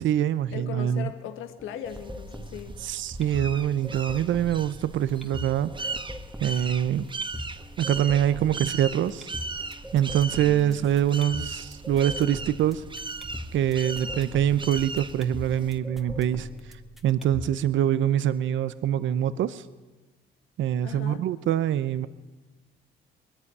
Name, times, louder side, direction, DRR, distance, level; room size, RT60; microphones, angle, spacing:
voice 1, 0.0-1.1 2.8-5.9 6.4-7.0 7.8-9.3 9.9-12.8 13.5-16.5 17.0-19.7 20.6-22.1, right 10 dB, 75° right, 14 dB, 0.8 m, -24 dB
voice 2, 0.5-2.7 10.4-10.9 20.8-21.3, left 9 dB, 90° left, 8 dB, 1.7 m, -38 dB
sound 1, 1.6-17.6, equal, ahead, 1.7 m, -42 dB
sound 2, 1.9-15.8, right 3 dB, 25° right, 1.3 m, -38 dB
21.0 x 14.5 x 9.7 m, 1.2 s
cardioid pair, 90°, 20 cm